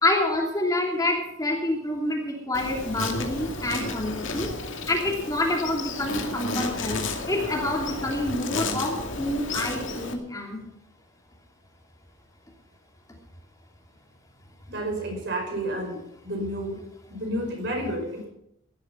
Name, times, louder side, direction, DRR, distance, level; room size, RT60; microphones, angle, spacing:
voice 1, 0.0-4.5 4.9-7.0 7.3-10.6, left 1 dB, 15° left, -1 dB, 3.0 m, -27 dB
Insect, 2.5-10.1, left 3 dB, 65° left, 2.2 m, -32 dB
voice 2, 14.7-16.0 16.2-16.8 17.1-18.3, right 1 dB, 55° right, 2 dB, 5.3 m, -30 dB
17.0 x 12.0 x 5.7 m, 0.77 s
head